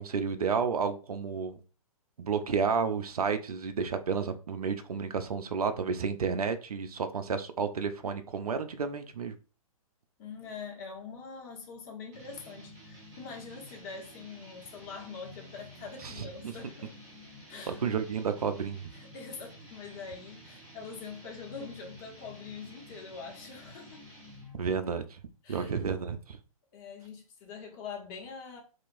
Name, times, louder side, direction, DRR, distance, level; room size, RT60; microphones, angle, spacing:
voice 1, 0.0-1.6 2.2-9.3 16.0-16.3 17.7-18.8 24.6-25.2 25.5-26.4, right 6 dB, 85° right, 0.4 m, -31 dB
voice 2, 10.2-17.0 17.5-18.0 18.9-24.0 25.4-25.7 26.7-28.6, left 5 dB, 35° left, 1.0 m, -44 dB
sound 1, 12.1-24.7, equal, 20° right, 0.9 m, -51 dB
2.8 x 2.4 x 2.5 m
hypercardioid pair, 125°, 19 cm